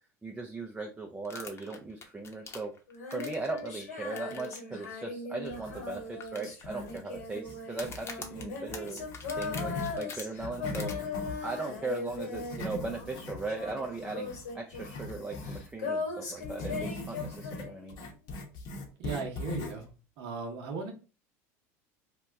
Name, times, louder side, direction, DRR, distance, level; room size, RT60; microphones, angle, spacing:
voice 1, 0.2-2.7 3.1-9.1 9.3-10.9 11.4-18.0, right 3 dB, 10° right, 2 dB, 0.5 m, -38 dB
sound 1, 1.2-3.6 4.2-4.6 4.8-4.9 5.5-5.6 6.2-7.0 7.7-10.2 10.7-10.9, left 4 dB, 30° left, 0.8 m, -44 dB
Female singing, 2.9-13.2 13.5-17.9, left 4 dB, 85° left, 1.5 m, -39 dB
sound 2, 5.4-6.3 6.6-10.0 10.3-15.7 16.4-19.9, left 2 dB, 55° left, 0.9 m, -41 dB
voice 2, 19.0-19.9 20.2-20.9, right 4 dB, 60° right, 2 dB, 0.8 m, -37 dB
2.9 x 2.2 x 3.4 m, 0.34 s
hypercardioid pair, 85°, 8 cm